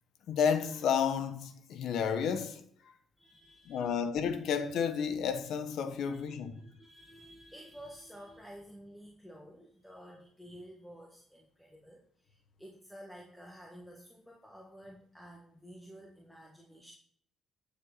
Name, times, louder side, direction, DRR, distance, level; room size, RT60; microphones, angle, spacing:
voice 1, 0.3-2.6 3.7-6.6, left 7 dB, 75° left, 1.1 m, -31 dB
voice 2, 3.2-4.0 6.0-16.9, equal, ahead, 1.6 m, -52 dB
8.9 x 7.2 x 4.0 m
cardioid pair, 90°, 0 cm